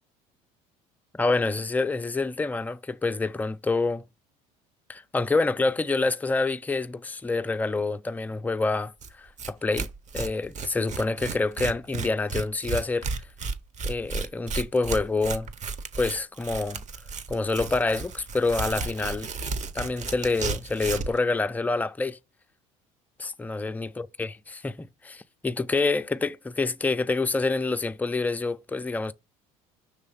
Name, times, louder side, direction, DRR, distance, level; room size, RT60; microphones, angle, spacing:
voice 1, 1.1-4.0 4.9-8.9 9.2-9.9 10.1-13.1 13.8-15.5 16.0-16.8 17.3-19.3 19.7-22.2 23.2-29.1, left 3 dB, 10° left, 0.5 m, -27 dB
Tearing, 9.0-9.1 9.4-9.5 9.7-21.2, right 4 dB, 40° right, 0.9 m, -33 dB
6.4 x 3.2 x 5.5 m
supercardioid pair, 85°, 18 cm